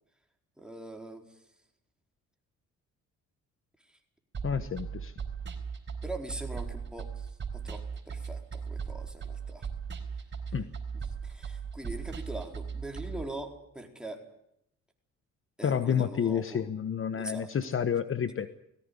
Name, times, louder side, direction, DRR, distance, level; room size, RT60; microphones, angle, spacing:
voice 1, 0.6-1.3 6.0-9.7 11.2-14.2 15.6-16.6 17.1-17.5, right 1 dB, 5° right, 2 dB, 4.4 m, -42 dB
sound 1, 4.3-13.2, right 6 dB, 40° right, 4.4 m, -38 dB
voice 2, 4.4-5.1 10.5-10.7 15.6-18.5, left 8 dB, 45° left, 12 dB, 1.2 m, -29 dB
19.5 x 17.0 x 9.9 m, 0.75 s
cardioid pair, 90°, 30 cm